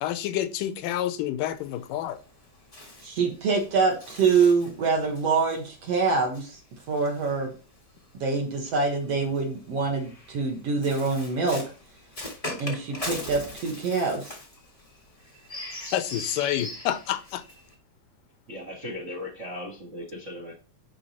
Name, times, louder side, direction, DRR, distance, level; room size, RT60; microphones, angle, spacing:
voice 1, 0.0-2.2 15.9-17.4, left 12 dB, 80° left, 2.1 m, -28 dB
Bird, 1.5-8.0 8.9-17.7, left 1 dB, 60° left, 0.3 m, -41 dB
voice 2, 3.0-6.6 6.9-7.5 8.2-11.6 12.6-14.3, right 4 dB, 55° right, 2.1 m, -25 dB
voice 3, 18.5-20.5, left 1 dB, 70° right, 0.7 m, -37 dB
10.5 x 3.7 x 4.3 m
omnidirectional pair, 4.1 m